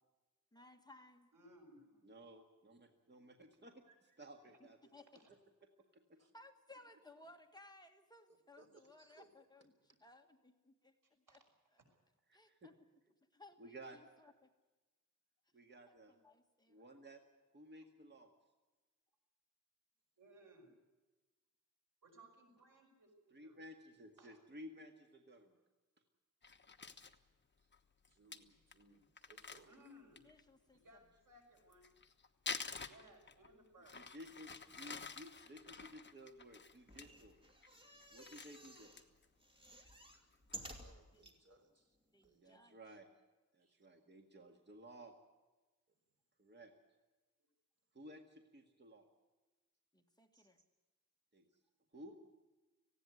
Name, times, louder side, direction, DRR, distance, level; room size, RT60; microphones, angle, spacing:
voice 1, 0.5-1.3 4.9-5.2 6.3-9.7 10.0-10.9 11.3-11.4 12.3-12.7 13.3-14.5 15.9-17.0 30.2-31.0 41.1-41.3 42.1-42.8 49.9-50.6, left 2 dB, 15° left, 4 dB, 1.5 m, -61 dB
voice 2, 1.3-2.1 3.9-4.0 5.1-5.3 11.3-11.4 11.8-12.0 17.8-17.9 20.2-20.7 22.0-23.6 24.2-24.4 29.7-30.2 30.7-31.9 32.9-34.0, right 1 dB, 90° right, 2 dB, 6.0 m, -63 dB
voice 3, 2.0-3.8 4.2-4.8 5.9-6.2 12.3-12.7 13.6-14.0 15.5-16.2 16.7-17.2 17.5-18.3 23.3-25.5 33.9-37.4 38.1-38.9 42.4-43.1 43.5-45.2 46.4-46.7 47.9-49.1 51.3-51.5 51.9-52.1, equal, 35° right, 4 dB, 1.8 m, -56 dB
voice 4, 8.6-9.3 9.6-9.7 27.6-27.7 28.1-29.8 40.6-42.0 42.2-42.5 43.6-43.9 45.9-46.0 50.3-50.6, right 3 dB, 50° right, 5 dB, 3.6 m, -67 dB
Crumpling crinkling, 26.4-27.2 27.7-27.8 28.0-28.1 28.3-28.4 28.7-28.8 29.2-30.4 31.6-33.5 33.8-37.0 37.4-37.7 38.0-39.2 39.6-39.7 40.1-40.6, left 4 dB, 35° left, 1.2 m, -48 dB
sound 1, 36.8-39.1 39.4-41.4 41.9-42.0 42.2-42.3, right 1 dB, 15° right, 2.7 m, -54 dB
19.0 x 16.0 x 9.5 m, 1.2 s
wide cardioid pair, 155°, 31 cm